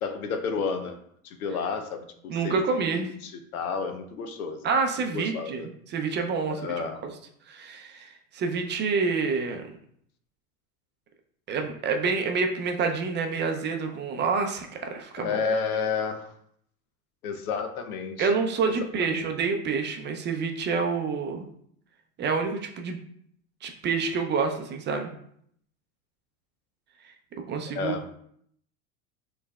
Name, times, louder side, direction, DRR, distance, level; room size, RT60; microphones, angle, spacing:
voice 1, 0.0-1.0 1.2-2.0 2.4-2.5 2.8-4.6 5.1-5.7 6.6-7.0 15.2-16.3 17.2-18.3 19.0-19.2 27.7-28.0, left 5 dB, 85° left, 8 dB, 0.7 m, -31 dB
voice 2, 2.3-3.1 4.6-6.6 7.0-7.1 7.5-9.7 11.5-15.4 18.2-21.4 22.2-23.0 23.6-25.1 27.5-27.9, right 5 dB, 25° right, 4 dB, 0.4 m, -28 dB
4.3 x 3.3 x 2.3 m, 0.68 s
hypercardioid pair, 95°, 42 cm